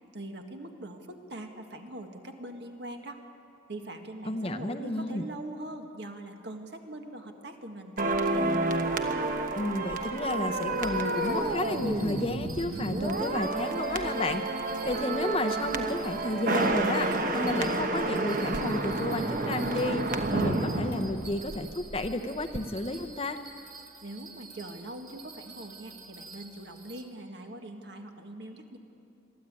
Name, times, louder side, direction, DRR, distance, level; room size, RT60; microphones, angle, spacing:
voice 1, 0.1-3.2 3.7-8.5 24.0-28.8, right 1 dB, 60° right, 4 dB, 1.7 m, -42 dB
voice 2, 4.2-5.3 9.6-14.4 14.8-23.4, left 1 dB, 30° left, 8 dB, 0.7 m, -32 dB
sound 1, 8.0-22.1 22.4-22.6, right 2 dB, 45° right, 1.1 m, -30 dB
Bell, 10.7-27.0, right 4 dB, 20° right, 2.3 m, -49 dB
22.5 x 14.0 x 8.8 m, 2.8 s
head